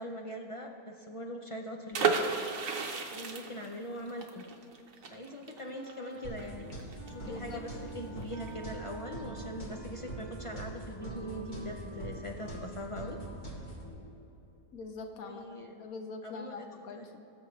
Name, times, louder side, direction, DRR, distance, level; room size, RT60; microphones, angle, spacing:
voice 1, 0.0-2.1 2.9-4.5 5.1-6.7 7.1-13.2 15.2-15.7 16.2-16.7 17.0-17.1, equal, 60° left, 2 dB, 0.3 m, -42 dB
sound 1, 1.9-7.6 7.8-7.9 8.2-8.5, right 5 dB, 65° right, 1.2 m, -33 dB
Wind instrument woodwind instrument, 5.7-12.7, right 4 dB, 35° right, 0.9 m, -50 dB
sound 2, 6.2-13.9, right 1 dB, 35° left, 2.0 m, -43 dB
voice 2, 7.2-7.6 14.7-17.2, left 4 dB, 80° left, 6 dB, 1.2 m, -43 dB
20.0 x 7.2 x 3.1 m, 3.0 s
omnidirectional pair, 1.5 m